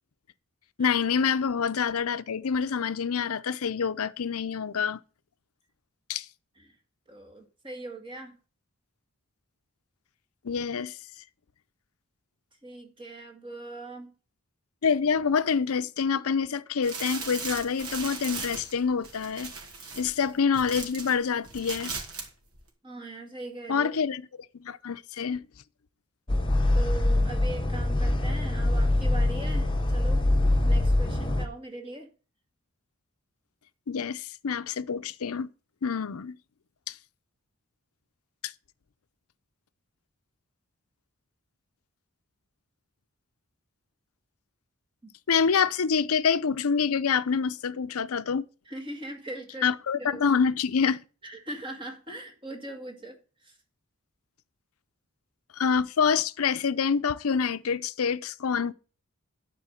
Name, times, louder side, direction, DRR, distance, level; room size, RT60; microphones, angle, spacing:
voice 1, 0.8-5.0 6.1-6.3 10.4-11.0 14.8-19.5 20.0-21.9 23.7-24.2 24.6-25.4 33.9-35.5 35.8-36.4 36.9-37.0 38.4-38.5 45.3-48.5 49.6-51.0 55.5-58.7, left 6 dB, 85° left, 0.6 m, -26 dB
voice 2, 7.1-8.4 12.6-14.1 22.8-23.9 26.7-30.2 30.7-32.1 45.0-45.1 48.7-49.7 50.0-50.2 51.2-53.6, right 2 dB, 25° right, 1.9 m, -40 dB
sound 1, 16.8-21.1 21.4-22.3 22.5-22.6, right 4 dB, 85° right, 2.5 m, -38 dB
sound 2, 26.3-31.5, left 1 dB, 20° left, 0.9 m, -24 dB
11.0 x 4.5 x 7.1 m
head